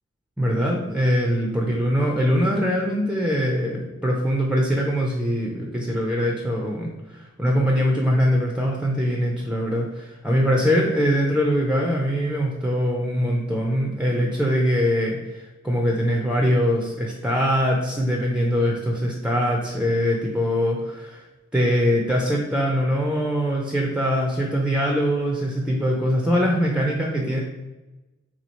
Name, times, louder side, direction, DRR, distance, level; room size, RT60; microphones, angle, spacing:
voice 1, 0.4-21.2 21.5-27.4, equal, 5° right, -1 dB, 0.4 m, -22 dB
2.9 x 2.3 x 4.2 m, 1.1 s
wide cardioid pair, 65°, 29 cm